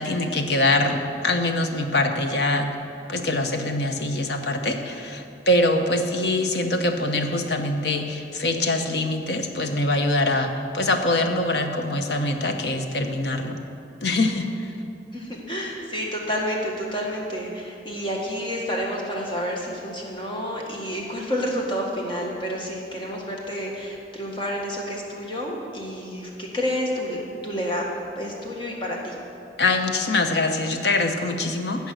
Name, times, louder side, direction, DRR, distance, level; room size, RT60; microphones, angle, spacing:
voice 1, 0.0-2.7 3.1-13.6 14.0-14.7 29.6-31.9, left 2 dB, 70° left, 5 dB, 0.9 m, -24 dB
voice 2, 15.1-27.2 27.4-29.2, equal, 30° left, -2 dB, 1.6 m, -29 dB
15.5 x 5.4 x 6.3 m, 2.6 s
head